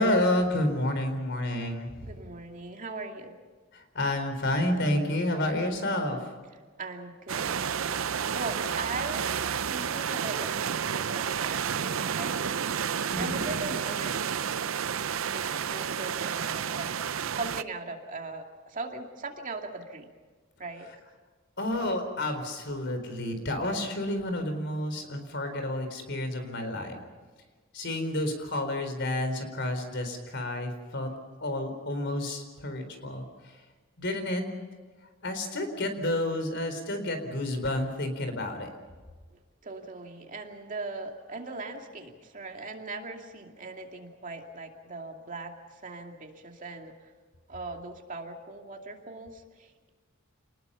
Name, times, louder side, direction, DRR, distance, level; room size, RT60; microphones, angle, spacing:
voice 1, 0.0-2.1 3.7-6.3 13.1-13.4 21.6-27.0 27.7-31.1 31.4-33.2 34.0-34.4 35.2-38.7, left 1 dB, 60° left, 7 dB, 4.2 m, -30 dB
voice 2, 2.0-3.3 6.6-14.7 15.3-16.9 17.3-20.1 20.6-20.9 39.6-47.1 47.5-49.9, right 3 dB, 40° right, 3 dB, 2.5 m, -40 dB
sound 1, 7.3-17.6, right 7 dB, 80° right, 0.6 m, -31 dB
29.0 x 20.0 x 5.7 m, 1.4 s
head